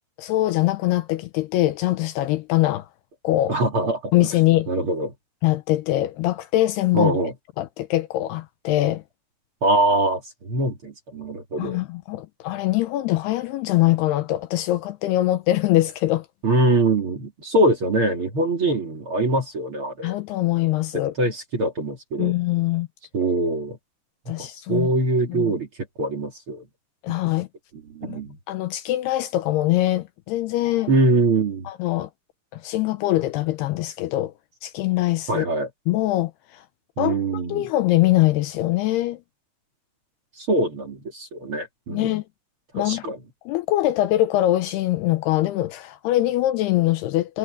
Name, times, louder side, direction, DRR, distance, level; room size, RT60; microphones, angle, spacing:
voice 1, 0.2-2.9 3.2-3.6 4.1-4.7 5.4-7.1 7.6-9.0 11.6-16.3 20.0-21.2 22.2-22.9 24.3-24.9 25.3-25.5 27.0-27.5 28.0-28.2 28.5-30.9 31.7-32.1 32.5-34.3 34.6-35.5 35.9-36.6 37.0-39.2 41.9-42.2 42.7-43.1 43.5-47.4, left 15 dB, 75° left, 2.6 m, -23 dB
voice 2, 3.5-4.1 4.7-5.1 6.9-7.3 9.6-11.8 16.4-20.1 21.2-22.3 23.1-23.8 24.4-25.7 26.0-26.6 27.9-28.4 30.9-31.7 35.3-35.7 37.0-37.6 40.4-42.1 42.8-43.2, right 2 dB, 35° right, 2.6 m, -23 dB
omnidirectional pair, 5.1 m